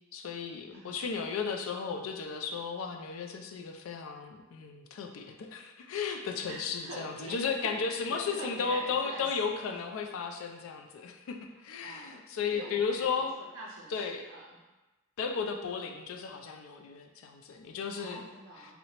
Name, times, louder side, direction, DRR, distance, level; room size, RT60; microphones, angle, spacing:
voice 1, 0.1-13.3 13.9-14.2 15.2-18.3, left 5 dB, 75° left, 4 dB, 0.3 m, -34 dB
voice 2, 6.5-9.8 11.8-12.2 12.5-14.6 18.0-18.8, right 2 dB, 85° right, -5 dB, 0.4 m, -45 dB
2.8 x 2.0 x 2.8 m, 1.1 s
head